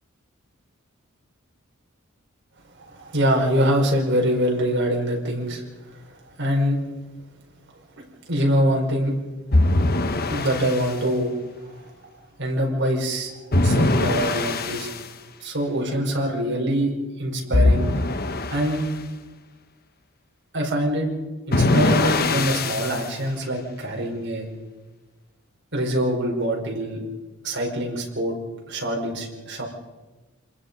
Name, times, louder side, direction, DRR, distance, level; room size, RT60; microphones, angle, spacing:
voice 1, 2.8-5.6 6.4-6.8 8.3-9.1 10.3-11.3 11.6-11.8 12.4-14.9 15.4-16.9 17.2-17.9 18.5-18.8 20.5-21.1 21.5-24.5 25.7-27.0 27.4-28.4 28.7-29.6, equal, 60° right, -1 dB, 5.2 m, -24 dB
sound 1, 9.5-10.9 13.5-15.0 17.5-18.9 21.5-23.1, left 2 dB, 50° left, 1.3 m, -21 dB
27.5 x 21.0 x 5.5 m, 1.2 s
head